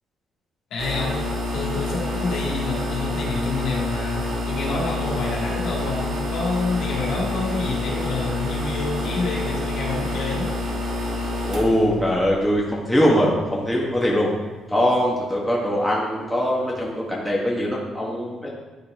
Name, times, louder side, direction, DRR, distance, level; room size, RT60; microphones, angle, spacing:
voice 1, 0.7-10.5, left 3 dB, 80° left, -3 dB, 2.0 m, -28 dB
sound 1, 0.8-13.2, left 2 dB, 75° right, 1.3 m, -28 dB
voice 2, 11.5-14.4 14.7-18.5, equal, ahead, -5 dB, 1.1 m, -22 dB
10.5 x 4.0 x 3.4 m, 1.3 s
cardioid pair, 125°, 0 cm